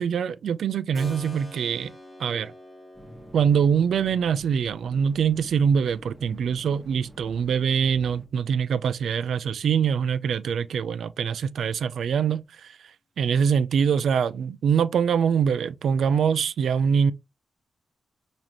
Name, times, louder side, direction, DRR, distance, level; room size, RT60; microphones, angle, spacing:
voice 1, 0.0-1.9 2.2-2.5 3.3-12.7 13.2-17.1, right 7 dB, 85° right, 0.3 m, -24 dB
Keyboard (musical), 0.9-9.5, left 1 dB, 15° left, 1.2 m, -49 dB
sound 1, 2.9-8.3, right 1 dB, ahead, 0.9 m, -47 dB
5.1 x 2.4 x 3.0 m
wide cardioid pair, 125°, 0 cm